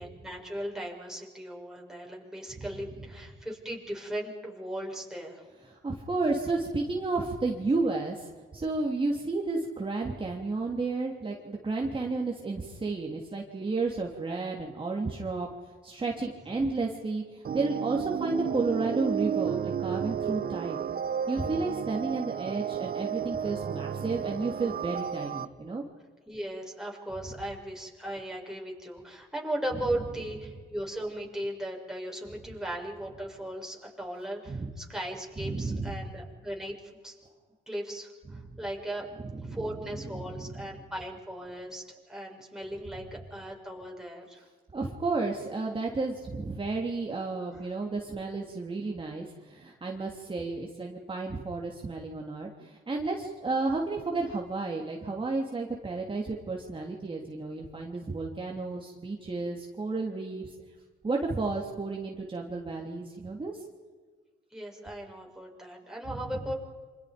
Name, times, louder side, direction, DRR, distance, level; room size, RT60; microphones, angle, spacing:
voice 1, 0.0-5.4 26.3-37.2 37.7-39.0 39.4-44.4 47.5-47.7 64.5-66.5, right 1 dB, ahead, -1 dB, 6.6 m, -37 dB
voice 2, 5.7-15.5 15.8-20.9 21.3-25.8 34.5-34.7 35.4-36.0 39.3-39.6 40.0-40.4 44.7-60.5 61.0-63.6 66.1-66.2, right 3 dB, 25° right, -1 dB, 3.2 m, -32 dB
sound 1, 17.4-25.5, right 8 dB, 50° right, 1.0 m, -32 dB
28.0 x 26.5 x 5.3 m, 1.4 s
cardioid pair, 90°, 20 cm